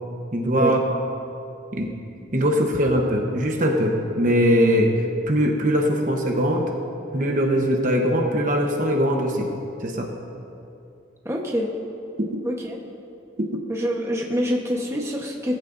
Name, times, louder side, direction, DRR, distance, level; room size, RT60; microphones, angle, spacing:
voice 1, 0.3-0.8 1.7-1.9 2.3-4.9 5.3-6.7 7.1-9.5 9.8-10.1 12.2-12.3 13.4-13.5, equal, 40° right, 1 dB, 1.1 m, -21 dB
voice 2, 11.2-11.7 12.4-12.8 13.7-15.6, equal, 15° right, -1 dB, 1.1 m, -25 dB
19.0 x 14.5 x 2.7 m, 2.6 s
head